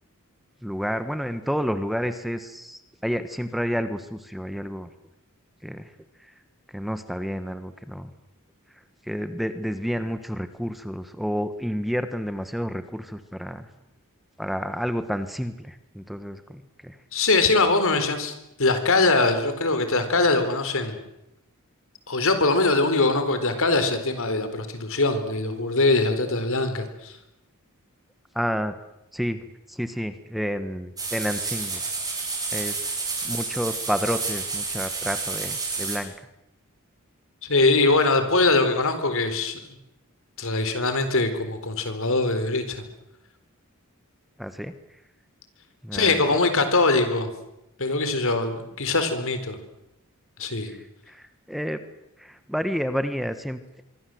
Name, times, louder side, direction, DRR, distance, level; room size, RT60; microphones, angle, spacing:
voice 1, 0.6-4.9 5.6-5.8 6.7-8.1 9.1-13.7 14.4-16.9 28.3-28.7 29.1-31.8 32.5-36.1 44.4-44.7 45.8-46.2 50.7-50.8 51.1-51.8 52.2-53.8, equal, ahead, 10 dB, 1.3 m, -30 dB
voice 2, 17.1-18.3 18.6-21.0 22.1-27.1 37.4-39.6 40.4-42.8 45.9-47.3 47.8-49.6 50.4-50.7, left 3 dB, 65° left, 9 dB, 4.2 m, -22 dB
sound 1, 31.0-36.0, right 4 dB, 20° right, 7.7 m, -30 dB
25.0 x 24.0 x 7.9 m, 0.87 s
head